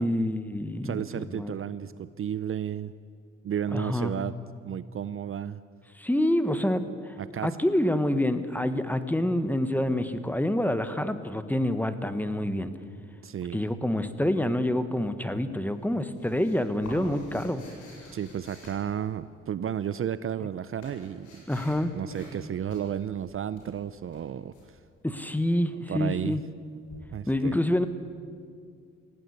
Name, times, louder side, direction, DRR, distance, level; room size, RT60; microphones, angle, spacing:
voice 1, 0.0-1.6 3.7-4.1 5.9-7.2 7.4-12.7 13.5-17.7 21.5-21.9 25.0-26.4 27.3-27.9, left 1 dB, 5° left, 11 dB, 1.3 m, -27 dB
voice 2, 0.8-2.9 3.4-4.3 4.6-5.6 7.2-7.5 13.2-13.6 18.1-21.4 21.9-24.8 25.9-26.4 27.1-27.5, right 9 dB, 45° right, 15 dB, 0.6 m, -33 dB
sound 1, 15.7-19.5 20.2-21.8 22.1-22.4 22.7-24.7 26.9-27.0, left 2 dB, 75° left, 7.8 m, -49 dB
19.0 x 15.5 x 9.8 m, 2.3 s
cardioid pair, 90°, 30 cm